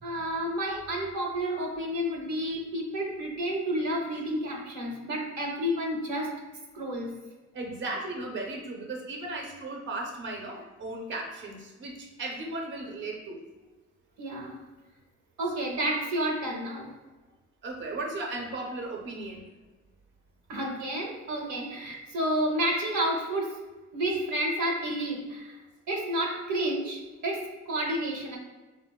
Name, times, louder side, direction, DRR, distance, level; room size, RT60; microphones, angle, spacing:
voice 1, 0.0-6.4 6.7-7.1 14.2-14.6 15.4-16.9 20.5-23.6 23.9-25.6 25.9-28.4, right 1 dB, 75° right, 0 dB, 0.7 m, -30 dB
voice 2, 7.5-13.4 17.6-19.5, right 2 dB, 40° right, 0 dB, 0.5 m, -36 dB
3.3 x 2.1 x 2.3 m, 1.2 s
cardioid pair, 90°, 30 cm